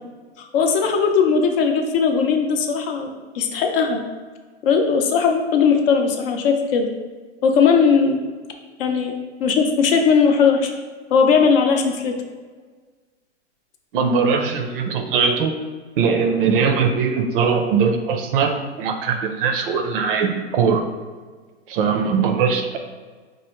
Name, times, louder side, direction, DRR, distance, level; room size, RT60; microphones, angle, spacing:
voice 1, 0.4-3.1 3.3-4.0 4.6-6.9 7.4-8.2 8.8-10.7 11.1-12.1, left 5 dB, 55° left, 4 dB, 0.6 m, -18 dB
voice 2, 13.9-15.6 16.0-20.9 21.7-22.8, right 5 dB, 50° right, 5 dB, 0.5 m, -20 dB
4.7 x 2.5 x 2.9 m, 1.5 s
hypercardioid pair, 135°, 34 cm